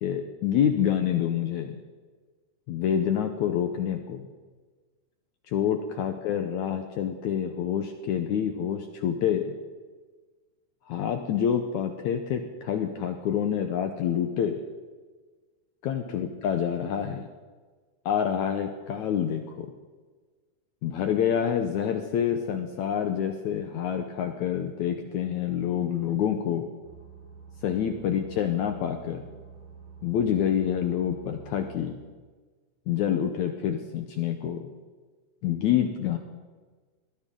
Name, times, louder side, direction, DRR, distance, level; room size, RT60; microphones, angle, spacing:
voice 1, 0.0-1.8 2.7-4.3 5.5-9.5 10.9-14.6 15.8-17.3 18.0-19.7 20.8-26.7 27.6-29.2 30.0-32.0 32.9-34.7 35.4-36.2, left 9 dB, 90° left, 6 dB, 1.6 m, -27 dB
sound 1, 26.8-31.9, right 6 dB, 40° right, 6.0 m, -47 dB
22.0 x 16.5 x 3.8 m, 1.4 s
omnidirectional pair, 4.6 m